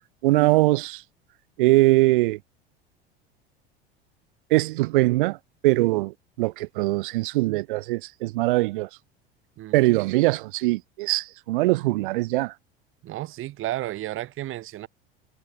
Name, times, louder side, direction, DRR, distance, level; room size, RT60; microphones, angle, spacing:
voice 1, 0.2-1.0 1.6-2.4 4.5-5.4 5.6-8.9 9.7-12.5, right 20 dB, 60° right, 0.6 m, -22 dB
voice 2, 13.0-14.9, right 15 dB, 45° right, 4.6 m, -32 dB
figure-of-eight pair, 75°, 30 cm